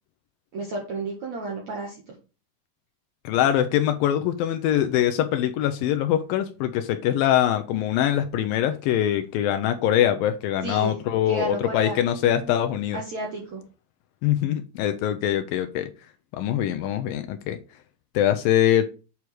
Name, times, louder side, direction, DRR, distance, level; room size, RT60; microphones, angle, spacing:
voice 1, 0.5-2.1 10.6-11.0 11.3-12.6 12.9-13.6, right 2 dB, 55° right, 2.2 m, -32 dB
voice 2, 3.2-13.0 14.2-15.9 16.3-17.6 18.1-18.8, left 11 dB, 85° left, 2.0 m, -23 dB
8.6 x 4.7 x 4.8 m
omnidirectional pair, 4.9 m